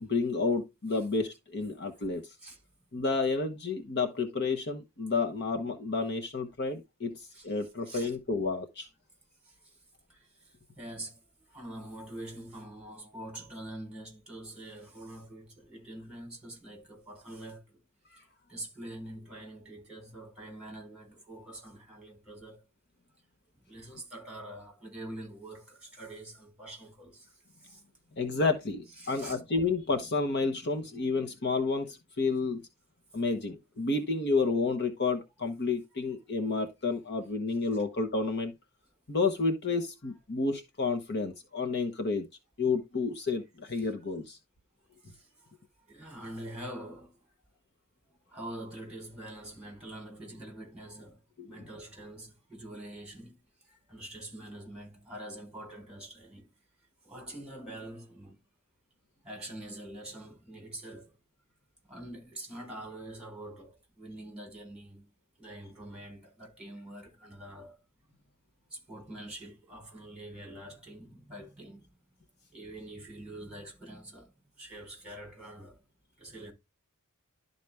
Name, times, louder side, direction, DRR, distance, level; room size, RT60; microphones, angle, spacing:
voice 1, 0.0-2.3 2.9-7.2 7.4-8.9 28.2-32.6 33.1-38.5 39.1-42.3 42.6-44.4 51.4-51.5, left 3 dB, 50° left, 1.0 m, -30 dB
voice 2, 7.3-8.2 9.4-9.7 10.1-11.2 11.5-17.8 18.2-18.3 18.5-22.6 23.7-27.3 27.6-27.8 29.0-29.4 43.8-43.9 45.0-45.5 45.9-47.2 48.3-51.2 51.5-53.4 53.7-56.5 57.0-58.4 59.2-61.1 61.9-65.1 65.4-67.8 68.7-71.9 72.5-75.8 76.2-76.5, right 1 dB, 5° right, 4.1 m, -45 dB
12.0 x 4.1 x 3.4 m
head